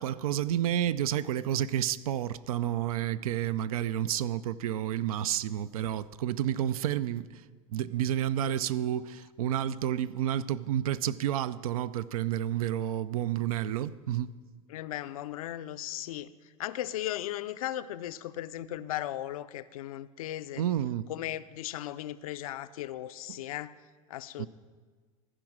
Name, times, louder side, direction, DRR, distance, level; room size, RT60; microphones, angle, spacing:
voice 1, 0.0-7.3 7.7-14.3 20.6-21.1 24.4-24.5, right 11 dB, 80° right, 0.4 m, -30 dB
voice 2, 14.7-16.3 16.6-20.6 21.1-23.7 24.1-24.5, left 13 dB, 80° left, 0.4 m, -37 dB
15.0 x 5.0 x 6.1 m
hypercardioid pair, 95°, 18 cm